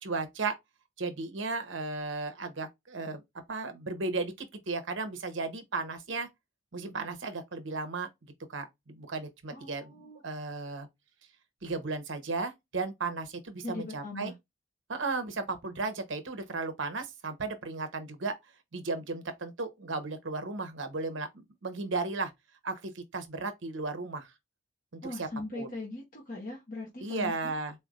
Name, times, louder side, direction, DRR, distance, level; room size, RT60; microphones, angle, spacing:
voice 1, 0.0-0.5 1.0-3.2 3.5-6.3 6.7-8.1 8.5-10.9 11.6-14.3 14.9-18.3 18.7-21.3 21.6-22.3 22.6-24.3 24.9-25.3 25.5-25.7 27.0-27.7, right 3 dB, 65° right, 0.9 m, -35 dB
voice 2, 9.5-10.2 13.6-14.3 25.0-27.5, left 2 dB, 45° left, 0.9 m, -40 dB
4.1 x 3.3 x 2.5 m
head